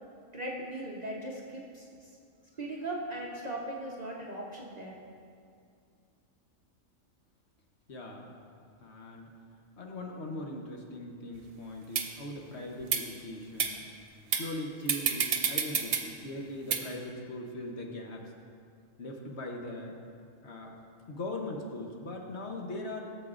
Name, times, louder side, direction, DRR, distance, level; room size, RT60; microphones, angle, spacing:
voice 1, 0.3-1.9 2.6-5.0, right 1 dB, 35° right, -3 dB, 0.8 m, -38 dB
voice 2, 7.9-8.4 8.8-9.3 9.8-13.8 14.4-18.3 19.0-20.0 20.4-20.8 21.1-23.0, left 1 dB, 55° left, 1 dB, 1.1 m, -40 dB
Race bicycle back wheel gear rims, 11.3-11.4 11.9-12.0 12.8-13.0 13.6-13.7 14.3-14.5 14.9-16.0 16.7-16.8, right 7 dB, 75° right, 1.1 m, -28 dB
16.5 x 7.2 x 2.4 m, 2.3 s
omnidirectional pair, 1.4 m